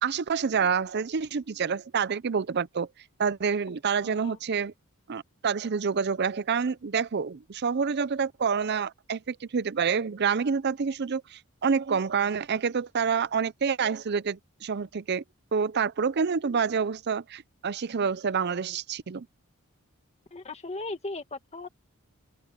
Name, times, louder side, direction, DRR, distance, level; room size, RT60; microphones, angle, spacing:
voice 1, 0.0-2.9 3.2-4.7 5.1-15.2 15.5-19.3, right 6 dB, 50° right, 0.5 m, -28 dB
voice 2, 4.0-4.4 20.3-21.7, left 2 dB, 30° left, 1.6 m, -37 dB
open air
head